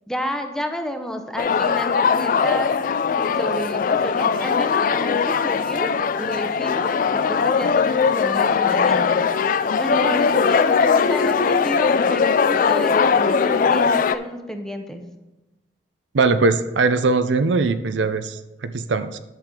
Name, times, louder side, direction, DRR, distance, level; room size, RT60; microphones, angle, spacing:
voice 1, 0.1-2.7 3.2-9.2 9.8-15.0, equal, 5° left, 5 dB, 0.7 m, -30 dB
sound 1, 1.4-14.2, left 6 dB, 50° left, 0.3 m, -20 dB
voice 2, 16.1-19.2, right 3 dB, 85° right, 11 dB, 0.5 m, -20 dB
10.5 x 6.6 x 3.7 m, 1.0 s
head